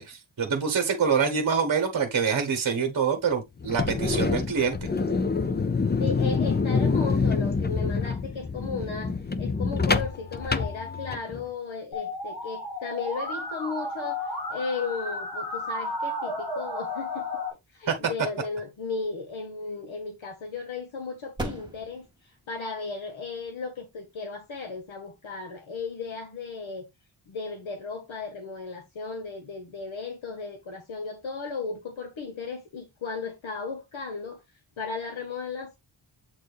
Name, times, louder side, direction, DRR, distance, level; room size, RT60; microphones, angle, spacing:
voice 1, 0.0-4.8 17.9-18.0, right 6 dB, 45° right, 1.1 m, -25 dB
sound 1, 3.6-11.4, left 4 dB, 20° left, 0.4 m, -26 dB
voice 2, 6.0-17.3 17.7-26.8 27.3-34.4 34.8-35.8, left 4 dB, 75° left, 1.4 m, -35 dB
Musical instrument, 11.9-17.5, left 1 dB, 55° left, 2.2 m, -33 dB
sound 2, 19.2-26.0, right 1 dB, 10° right, 1.6 m, -44 dB
7.9 x 4.4 x 3.3 m
wide cardioid pair, 180°, 48 cm